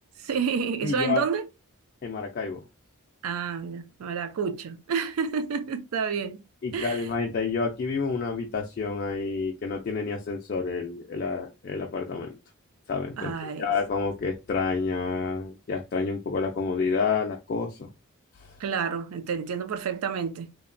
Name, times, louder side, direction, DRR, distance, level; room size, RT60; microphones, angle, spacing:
voice 1, 0.2-1.5 3.2-6.4 6.7-7.1 13.2-13.7 18.6-20.5, right 6 dB, 85° right, 0.4 m, -29 dB
voice 2, 0.8-1.2 2.0-2.6 6.6-12.4 12.9-17.9 18.4-18.5, left 4 dB, 45° left, 0.3 m, -29 dB
2.9 x 2.1 x 2.5 m
head